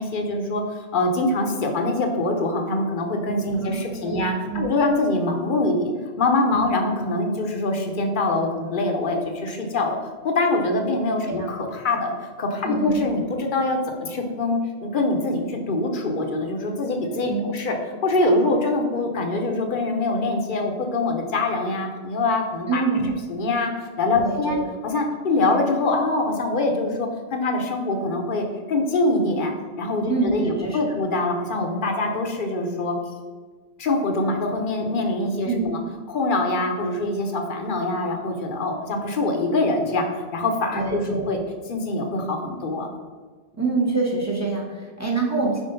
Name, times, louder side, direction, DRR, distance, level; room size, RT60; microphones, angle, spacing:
voice 1, 0.0-5.9 6.2-10.0 10.2-17.8 18.0-22.8 23.3-33.0 33.8-35.8 36.1-41.4 41.7-42.9, left 2 dB, 50° left, 3 dB, 0.9 m, -24 dB
voice 2, 3.6-4.6 11.3-11.5 12.6-12.9 17.0-17.5 22.7-23.1 24.2-24.6 30.1-30.3 30.6-30.8 35.4-35.6 40.7-41.2 43.6-45.6, right 4 dB, 15° right, -1 dB, 0.8 m, -26 dB
4.9 x 3.7 x 5.2 m, 1.5 s
omnidirectional pair, 1.1 m